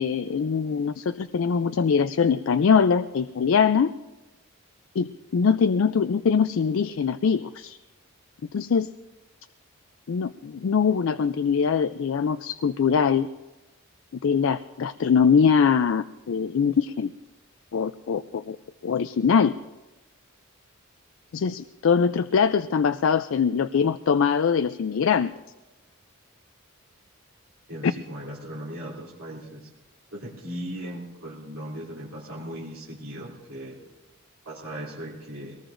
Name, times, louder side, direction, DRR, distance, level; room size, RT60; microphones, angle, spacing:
voice 1, 0.0-3.9 5.0-7.8 8.5-8.9 10.1-13.3 14.2-17.1 17.7-18.6 18.8-19.5 21.3-25.3 27.8-27.9, left 6 dB, 60° left, 11 dB, 0.4 m, -22 dB
voice 2, 27.7-29.7 30.1-33.8 34.4-35.6, equal, 65° right, -7 dB, 3.1 m, -38 dB
22.5 x 18.5 x 2.6 m, 1.1 s
head